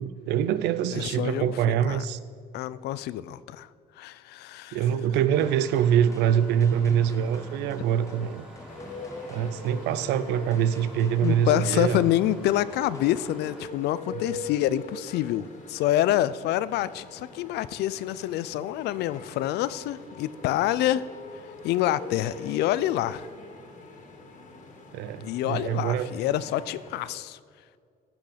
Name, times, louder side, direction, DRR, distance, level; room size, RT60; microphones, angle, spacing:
voice 1, 0.0-2.2 4.7-8.5 9.3-12.1 14.1-14.3 24.9-26.1, right 9 dB, 85° right, 14 dB, 0.6 m, -24 dB
voice 2, 0.9-1.5 1.9-2.0 2.5-3.7 4.0-4.8 11.2-21.0 21.6-23.2 25.2-27.4, left 13 dB, 75° left, 17 dB, 0.5 m, -27 dB
Engine starting, 5.3-13.7, right 1 dB, 5° right, 2.5 m, -47 dB
sound 1, 5.4-13.8, left 1 dB, 20° left, 1.1 m, -48 dB
sound 2, 8.7-27.1, left 3 dB, 50° left, 2.2 m, -43 dB
15.0 x 6.1 x 5.1 m, 2.2 s
cardioid pair, 110°, 17 cm